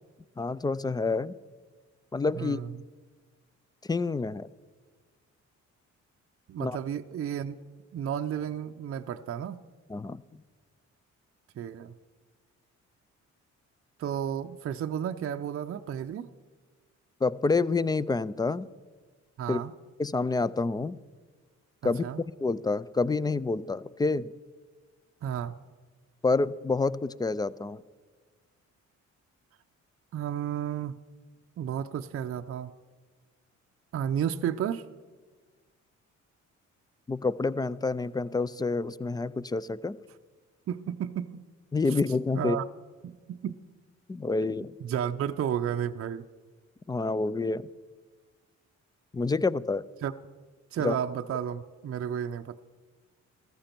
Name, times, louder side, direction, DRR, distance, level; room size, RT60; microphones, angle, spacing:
voice 1, 0.4-1.4 2.1-2.6 3.9-4.5 6.6-6.8 9.9-10.2 17.2-18.7 19.5-19.6 20.0-21.0 21.8-22.0 22.4-24.3 26.2-27.8 37.1-40.0 41.7-42.6 44.1-44.7 46.9-47.7 49.1-49.8 50.8-51.0, left 3 dB, 15° left, 19 dB, 0.3 m, -28 dB
voice 2, 2.3-2.7 6.5-7.6 7.9-9.6 11.6-11.9 14.0-16.3 19.4-19.7 21.8-22.2 25.2-25.6 30.1-30.9 31.6-32.7 33.9-34.9 40.7-41.4 41.9-42.0 42.3-42.6 43.0-43.6 44.8-46.3 50.0-50.1 50.7-52.6, right 9 dB, 50° right, 6 dB, 0.5 m, -32 dB
14.5 x 14.0 x 4.5 m, 1.4 s
cardioid pair, 90°, 30 cm